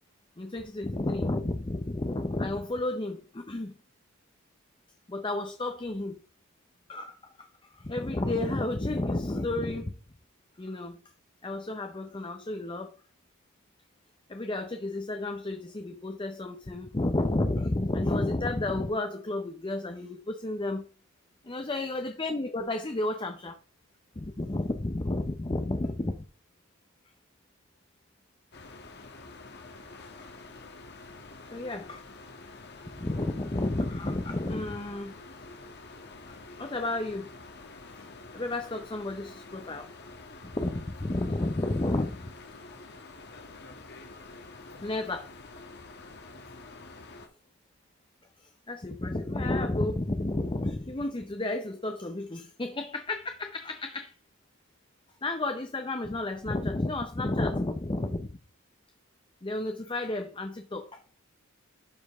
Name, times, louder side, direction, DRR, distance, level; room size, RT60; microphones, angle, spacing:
voice 1, 0.4-3.7 5.1-6.2 6.9-7.5 7.7-9.9 10.6-11.0 11.4-13.0 14.3-20.8 21.4-23.6 24.2-26.3 31.5-32.0 33.0-35.1 36.3-37.3 38.0-38.1 38.3-39.9 40.4-42.2 44.8-45.3 48.4-54.1 55.2-58.4 59.4-61.0, left 2 dB, 25° left, 0.6 m, -31 dB
sound 1, 28.5-47.3, left 3 dB, 55° left, 1.3 m, -47 dB
11.5 x 5.1 x 3.5 m
head